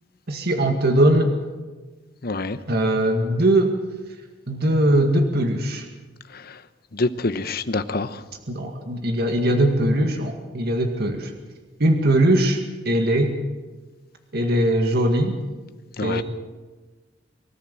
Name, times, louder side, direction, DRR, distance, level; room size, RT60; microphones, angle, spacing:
voice 1, 0.3-1.3 2.7-3.7 4.5-5.8 8.5-11.3 11.8-12.6 12.9-13.3 14.3-15.3 16.0-16.2, right 1 dB, 60° right, 2.1 m, -20 dB
voice 2, 2.2-2.6 6.3-6.6 6.9-8.2 16.0-16.2, left 3 dB, 55° left, 1.0 m, -26 dB
24.5 x 13.5 x 7.7 m
head